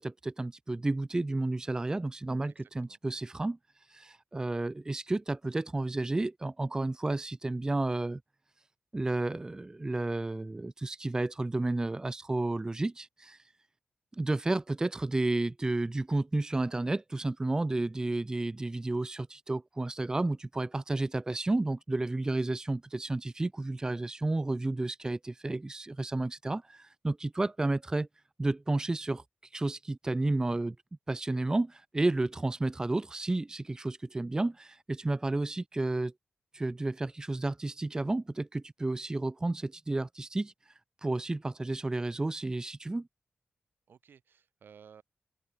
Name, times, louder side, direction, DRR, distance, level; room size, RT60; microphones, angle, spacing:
voice 1, 0.0-3.6 3.9-8.2 8.9-13.4 14.1-28.1 28.4-29.2 29.5-30.8 31.1-36.1 36.5-40.5 41.0-43.1, right 2 dB, 20° right, 0.6 m, -31 dB
voice 2, 2.4-3.0 43.9-45.0, right 7 dB, 80° right, 2.5 m, -56 dB
open air
wide cardioid pair, 105°, 3 cm